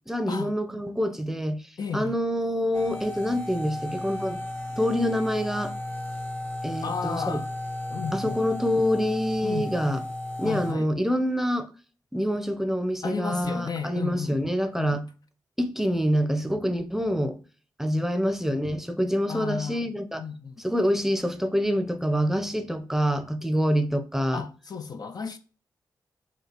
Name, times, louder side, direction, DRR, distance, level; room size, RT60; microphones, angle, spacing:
voice 1, 0.1-1.6 1.9-4.4 4.8-5.7 6.6-7.4 8.1-10.0 10.4-11.7 12.1-15.0 15.6-17.4 17.8-20.2 20.6-24.4, equal, 5° right, 0.6 m, -26 dB
voice 2, 1.8-2.1 6.8-7.5 7.9-8.4 9.4-9.8 10.4-10.9 13.0-14.4 14.8-15.0 17.9-18.1 19.3-19.9 20.2-20.6 24.3-25.4, left 6 dB, 55° left, 0.4 m, -33 dB
sound 1, 2.7-10.7, left 1 dB, 25° left, 0.9 m, -34 dB
5.0 x 2.3 x 2.9 m
cardioid pair, 45°, 8 cm